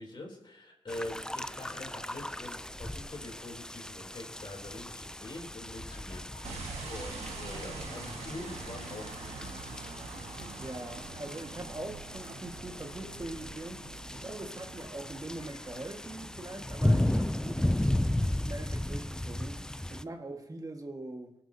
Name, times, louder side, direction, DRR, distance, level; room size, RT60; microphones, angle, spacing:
voice 1, 0.0-9.5, left 1 dB, 45° left, 3.5 m, -44 dB
sound 1, 0.9-20.0, left 1 dB, 5° left, 0.4 m, -35 dB
sound 2, 4.6-20.2, left 3 dB, 75° left, 1.9 m, -63 dB
sound 3, 6.4-15.8, right 3 dB, 80° right, 1.8 m, -44 dB
voice 2, 10.6-21.3, right 2 dB, 35° right, 1.8 m, -43 dB
20.0 x 7.6 x 2.9 m
supercardioid pair, 45°, 11 cm